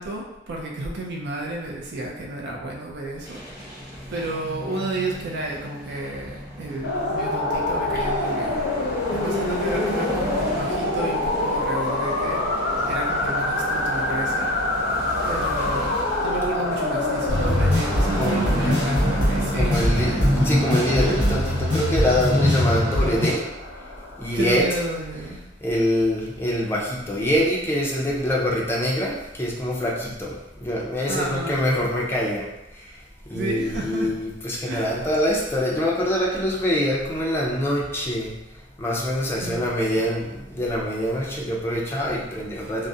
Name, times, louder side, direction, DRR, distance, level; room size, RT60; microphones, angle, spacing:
voice 1, 0.0-3.4 4.1-8.6 9.1-12.4 12.9-14.5 15.2-20.2 24.3-25.4 31.1-31.6 33.3-34.1 34.7-35.1 39.4-39.6 40.0-40.1, right 2 dB, 65° right, -1 dB, 0.4 m, -31 dB
sound 1, 3.2-22.3, equal, 20° right, 0.9 m, -36 dB
sound 2, 6.8-24.9, left 2 dB, 65° left, 0.5 m, -27 dB
sound 3, 17.3-23.3, equal, 80° right, 1.1 m, -21 dB
voice 2, 18.1-18.8 19.5-20.1 20.4-23.4 24.2-24.6 25.6-32.5 33.3-38.3 38.8-42.9, equal, 15° left, -4 dB, 0.4 m, -24 dB
2.3 x 2.0 x 2.6 m, 0.96 s
head